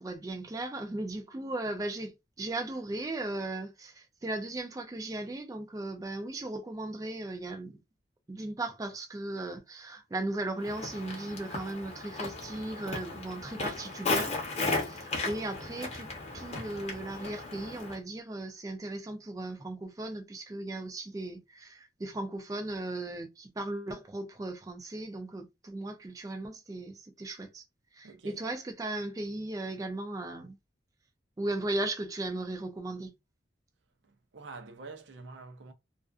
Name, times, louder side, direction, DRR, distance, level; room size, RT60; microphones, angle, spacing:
voice 1, 0.0-7.8 8.3-14.4 14.7-27.6 27.9-30.6 31.4-33.1, right 2 dB, 20° right, 0.3 m, -37 dB
Walk footsteps, 10.6-18.0, left 3 dB, 35° left, 0.8 m, -35 dB
voice 2, 28.0-28.4 34.1-35.7, right 3 dB, 85° right, 0.5 m, -47 dB
2.4 x 2.4 x 2.3 m
head